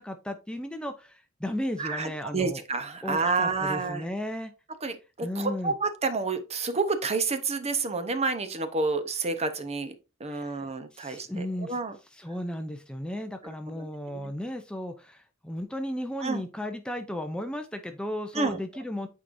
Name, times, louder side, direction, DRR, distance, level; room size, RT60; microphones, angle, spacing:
voice 1, 0.0-2.6 3.0-4.5 5.2-5.7 10.3-11.8 12.1-19.1, left 1 dB, 5° left, 0.5 m, -35 dB
voice 2, 1.8-4.0 4.8-9.9 10.2-12.0 13.4-14.3 16.2-16.4 18.3-18.6, right 4 dB, 30° right, 0.8 m, -29 dB
8.7 x 4.7 x 2.6 m
head